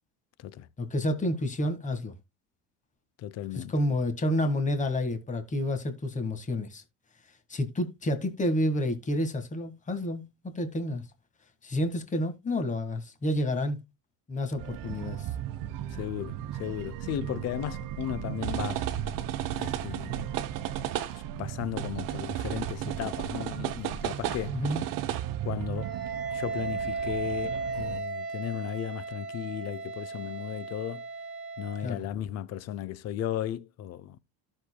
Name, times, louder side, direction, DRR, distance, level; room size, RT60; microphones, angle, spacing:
voice 1, 0.8-2.1 3.5-6.8 7.5-11.0 11.6-13.8 14.3-15.3 24.5-24.8 31.8-32.0, left 1 dB, 20° left, 1.7 m, -29 dB
voice 2, 3.2-3.7 15.9-18.9 19.6-20.3 21.1-24.6 25.4-25.9 26.3-31.0 31.6-34.2, left 11 dB, 45° left, 0.7 m, -35 dB
sound 1, 14.6-28.0, right 11 dB, 65° right, 1.1 m, -34 dB
Wind instrument woodwind instrument, 25.8-31.9, right 4 dB, 25° right, 2.8 m, -35 dB
13.0 x 6.6 x 2.2 m
cardioid pair, 125°, 35 cm